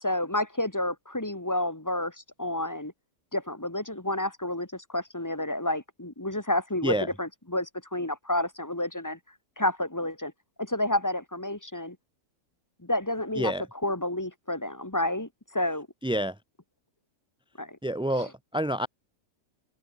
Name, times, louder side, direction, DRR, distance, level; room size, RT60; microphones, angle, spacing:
voice 1, 0.0-2.9 3.3-9.2 9.6-10.3 10.6-12.0 12.8-13.5 13.8-15.9 17.6-17.8 18.2-18.3, left 1 dB, 15° left, 1.7 m, -30 dB
voice 2, 16.0-16.4 17.8-18.9, right 1 dB, 5° right, 0.5 m, -28 dB
omnidirectional pair, 1.5 m